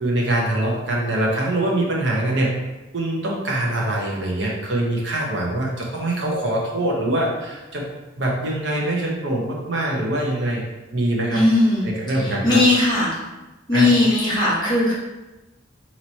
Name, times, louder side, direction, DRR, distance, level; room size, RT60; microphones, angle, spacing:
voice 1, 0.0-2.5 2.9-7.8 8.2-10.6 10.9-11.4 11.8-12.6 13.7-13.9, right 1 dB, 60° right, -2 dB, 0.9 m, -23 dB
voice 2, 11.3-11.8 12.2-13.1 13.7-14.9, left 2 dB, 20° left, -7 dB, 1.1 m, -18 dB
3.0 x 2.9 x 4.1 m, 1.1 s
head